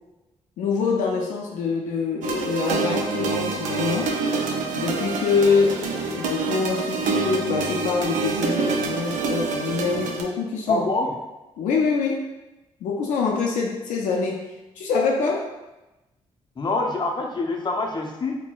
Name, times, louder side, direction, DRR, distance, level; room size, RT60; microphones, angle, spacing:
voice 1, 0.6-4.1 4.8-10.9 11.6-12.2 12.8-14.4 14.8-15.4, left 5 dB, 85° left, 0 dB, 0.4 m, -25 dB
sound 1, 2.2-10.2, right 4 dB, 90° right, 0.4 m, -26 dB
voice 2, 10.7-11.1 16.6-18.3, left 2 dB, 35° left, 1 dB, 0.6 m, -25 dB
4.3 x 2.1 x 2.3 m, 1.0 s
supercardioid pair, 55°, 13 cm